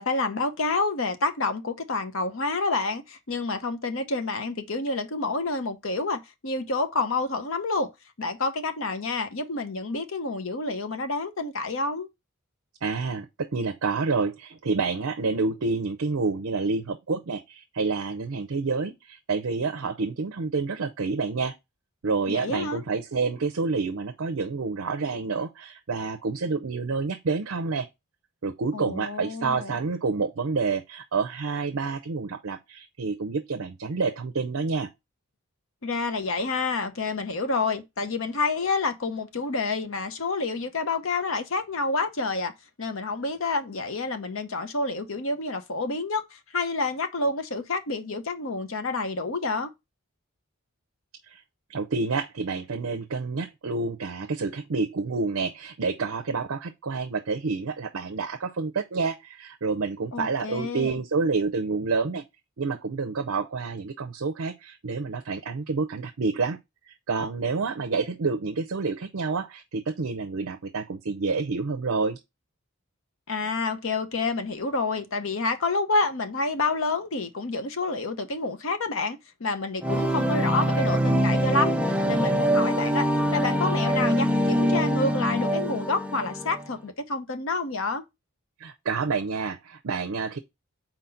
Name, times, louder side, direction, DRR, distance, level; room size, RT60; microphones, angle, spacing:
voice 1, 0.0-7.9 8.2-12.1 22.3-22.8 28.7-29.7 35.8-42.5 42.8-49.7 60.1-60.9 73.3-81.8 82.1-83.1 83.3-88.0, left 3 dB, 65° left, 0.8 m, -28 dB
voice 2, 12.8-21.6 22.0-27.9 28.4-34.9 51.2-51.4 51.7-62.2 62.6-66.6 66.8-72.2 88.6-90.4, right 4 dB, 65° right, 0.6 m, -28 dB
sound 1, 79.8-86.7, equal, 5° right, 0.4 m, -24 dB
4.4 x 3.9 x 5.6 m
head